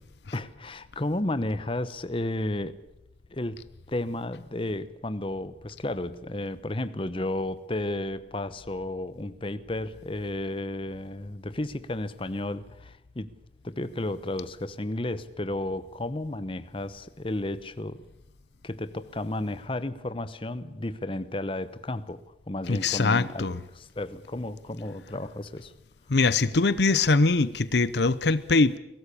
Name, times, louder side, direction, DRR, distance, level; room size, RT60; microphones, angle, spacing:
voice 1, 0.3-2.8 3.3-3.6 3.9-13.3 13.6-18.0 18.6-25.7, left 1 dB, 30° left, 1.0 m, -33 dB
voice 2, 22.7-23.6 26.1-28.8, left 3 dB, 70° left, 0.8 m, -22 dB
23.0 x 18.0 x 8.5 m
head